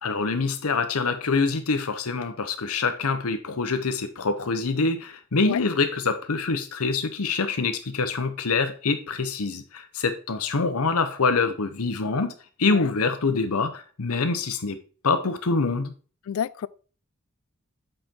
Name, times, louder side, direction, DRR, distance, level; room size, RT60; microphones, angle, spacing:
voice 1, 0.0-12.3 12.6-14.8 15.0-15.9, left 4 dB, 85° left, 0.9 m, -25 dB
voice 2, 16.3-16.7, left 8 dB, 70° left, 0.3 m, -29 dB
7.8 x 4.3 x 3.7 m
head